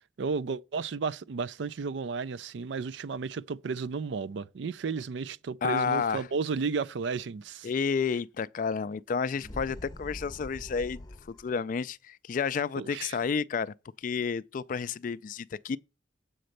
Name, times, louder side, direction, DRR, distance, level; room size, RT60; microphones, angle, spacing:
voice 1, 0.2-7.7 12.8-13.2, right 5 dB, 65° right, 0.4 m, -33 dB
voice 2, 5.6-6.3 7.6-15.8, left 6 dB, 45° left, 0.3 m, -31 dB
sound 1, 9.3-11.5, left 1 dB, 20° left, 0.7 m, -44 dB
7.8 x 4.2 x 6.5 m
head